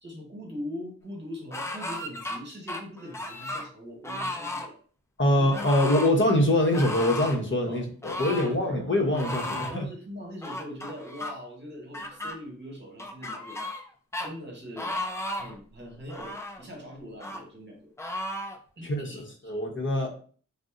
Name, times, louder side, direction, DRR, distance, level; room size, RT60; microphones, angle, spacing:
voice 1, 0.0-4.7 5.3-5.7 7.7-7.8 8.3-9.0 9.4-13.8 14.2-14.9 15.3-17.9 18.8-19.6, equal, 35° right, 0 dB, 1.3 m, -41 dB
sound 1, 1.5-2.4 2.7-3.7 4.0-4.7 5.5-6.1 6.7-7.4 8.0-8.5 9.1-9.8 10.4-11.3 11.9-12.3 13.0-13.9 14.1-14.3 14.8-15.5 16.1-16.6 17.2-17.4 18.0-18.6, left 1 dB, 10° left, 0.4 m, -34 dB
voice 2, 5.2-9.9 18.8-20.1, left 1 dB, 35° left, 1 dB, 0.8 m, -24 dB
2.6 x 2.1 x 3.6 m, 0.43 s
cardioid pair, 75°, 33 cm